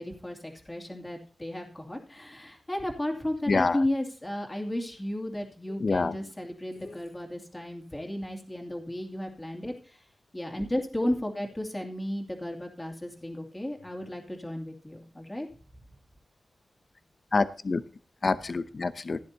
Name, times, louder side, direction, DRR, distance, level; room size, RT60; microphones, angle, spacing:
voice 1, 0.0-10.0 10.3-15.5, left 1 dB, 15° left, 2 dB, 2.5 m, -34 dB
voice 2, 3.5-3.8 5.8-6.1 17.3-17.8 18.2-19.2, left 3 dB, 50° left, 13 dB, 0.6 m, -26 dB
15.5 x 10.5 x 2.8 m, 0.40 s
wide cardioid pair, 95°, 0 cm